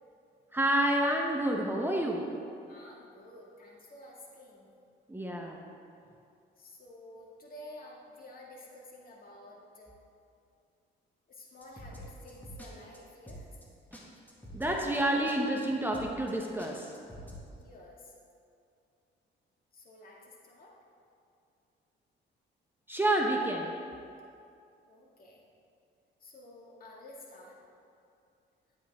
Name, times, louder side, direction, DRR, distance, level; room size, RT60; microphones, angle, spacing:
voice 1, 0.5-2.3 5.1-5.6 14.5-16.9 22.9-23.7, right 1 dB, 10° right, 0 dB, 0.9 m, -29 dB
voice 2, 2.7-4.7 6.6-9.9 11.3-13.5 17.6-18.1 19.7-20.8 24.9-25.4 26.2-27.6, left 1 dB, 45° left, -3 dB, 2.2 m, -51 dB
sound 1, 11.6-12.7 12.9-13.0 13.3-13.7 13.9-14.0 14.3-15.0 15.3-15.4 15.6-15.7 15.9-16.3 16.6-17.4, equal, 10° left, 1.9 m, -46 dB
11.5 x 9.3 x 3.6 m, 2.5 s
cardioid pair, 90°, 20 cm